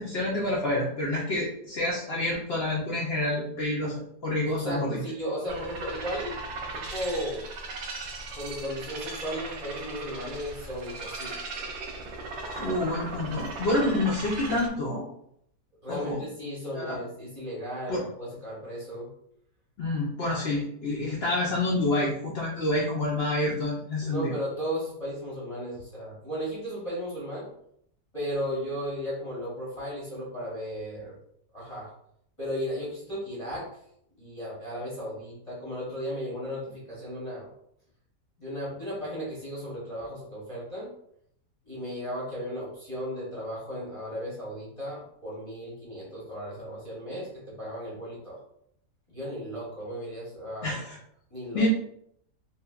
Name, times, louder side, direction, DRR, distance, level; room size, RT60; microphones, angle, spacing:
voice 1, 0.0-5.0 12.5-15.0 15.9-16.2 16.7-17.0 17.9-18.0 19.8-24.3 50.6-51.0 51.5-51.7, left 2 dB, 70° left, -4 dB, 0.5 m, -28 dB
voice 2, 4.4-7.5 8.4-11.7 15.8-19.1 24.0-27.5 28.1-31.1 31.5-31.9 32.4-33.7 34.2-37.5 38.4-40.9 41.7-48.4 49.1-50.8 51.3-51.6, equal, 30° left, -7 dB, 0.7 m, -35 dB
sound 1, 5.5-14.7, right 3 dB, 65° right, 0.7 m, -38 dB
3.1 x 2.7 x 2.3 m, 0.71 s
omnidirectional pair, 1.7 m